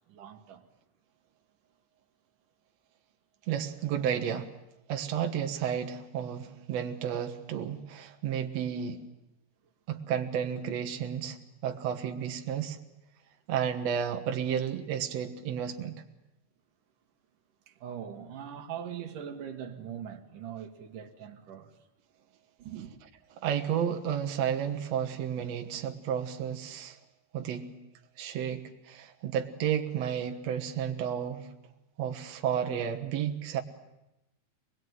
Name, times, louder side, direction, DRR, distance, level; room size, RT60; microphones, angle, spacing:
voice 1, 0.1-0.7 17.7-21.7 22.6-22.9, right 9 dB, 75° right, 3.1 m, -41 dB
voice 2, 3.5-4.5 4.9-9.0 9.9-11.4 11.6-12.8 13.5-16.0 23.4-27.0 27.3-27.7 28.2-31.5 32.0-33.6, right 8 dB, 60° right, 2.4 m, -32 dB
24.5 x 19.5 x 9.4 m
omnidirectional pair, 3.7 m